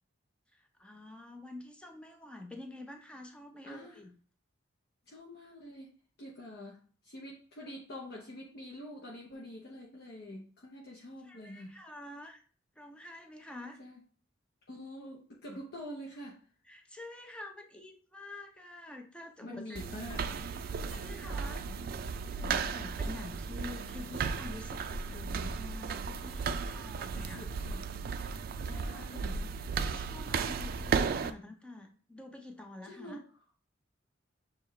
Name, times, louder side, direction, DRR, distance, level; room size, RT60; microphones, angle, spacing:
voice 1, 0.5-4.1 11.2-12.4 12.8-13.8 16.6-19.8 20.9-21.6 22.3-27.5 28.6-29.2 29.8-33.2, left 2 dB, 5° left, 3 dB, 0.6 m, -47 dB
voice 2, 3.6-4.1 5.1-5.9 6.2-11.8 13.8-14.0 14.7-16.5 19.4-20.5 27.1-27.9 28.6-29.6 32.8-33.3, left 1 dB, 55° left, -2 dB, 0.8 m, -46 dB
sound 1, 19.8-31.3, right 5 dB, 50° right, 0.3 m, -35 dB
6.6 x 2.4 x 3.2 m, 0.42 s
head